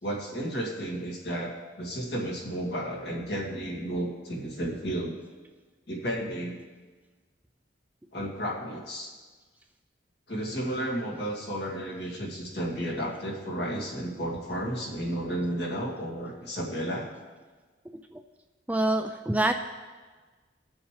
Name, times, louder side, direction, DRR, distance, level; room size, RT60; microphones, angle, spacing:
voice 1, 0.0-5.2 5.9-6.6 8.1-9.1 10.3-17.1, right 1 dB, 60° left, -2 dB, 2.3 m, -32 dB
voice 2, 18.7-19.5, right 1 dB, 10° right, 5 dB, 0.4 m, -25 dB
19.0 x 7.1 x 3.4 m, 1.4 s
head